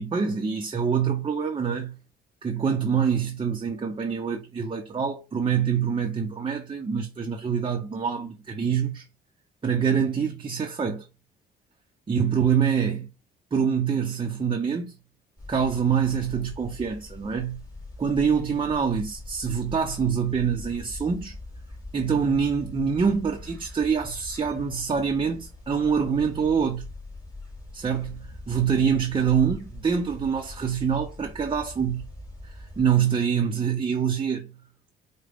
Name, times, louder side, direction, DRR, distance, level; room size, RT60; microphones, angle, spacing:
voice 1, 0.0-1.9 2.4-9.1 9.6-11.1 12.1-13.1 13.5-14.9 15.5-17.6 18.0-21.3 21.9-26.9 27.7-32.0 32.4-34.5, right 7 dB, 25° right, 0.7 m, -25 dB
sound 1, 15.4-32.9, left 2 dB, 20° left, 2.2 m, -42 dB
4.7 x 2.2 x 3.5 m
cardioid pair, 90°, 20 cm